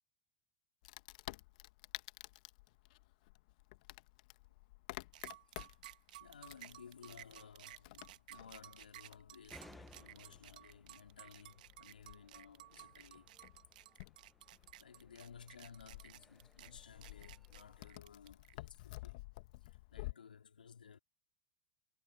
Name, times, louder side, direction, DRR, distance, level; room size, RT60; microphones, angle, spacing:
Wood, 0.8-20.1, left 21 dB, 60° left, 1.3 m, -53 dB
sound 1, 5.1-18.5, right 15 dB, 70° right, 1.3 m, -55 dB
voice 1, 6.2-13.4 14.8-19.2 19.6-21.0, left 7 dB, 85° left, 3.6 m, -57 dB
sound 2, 9.5-17.9, left 1 dB, 5° left, 0.9 m, -64 dB
hypercardioid pair, 100°, 5 cm